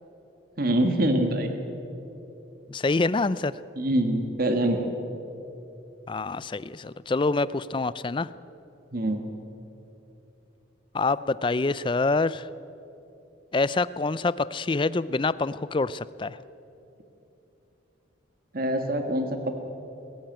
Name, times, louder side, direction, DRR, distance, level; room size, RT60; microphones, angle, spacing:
voice 1, 0.6-1.5 3.8-4.9 8.9-9.2 18.5-19.5, right 1 dB, 50° right, 6 dB, 1.6 m, -24 dB
voice 2, 2.7-3.5 6.1-8.3 10.9-12.5 13.5-16.4, left 3 dB, 25° left, 17 dB, 0.4 m, -26 dB
21.5 x 15.0 x 9.1 m, 2.9 s
head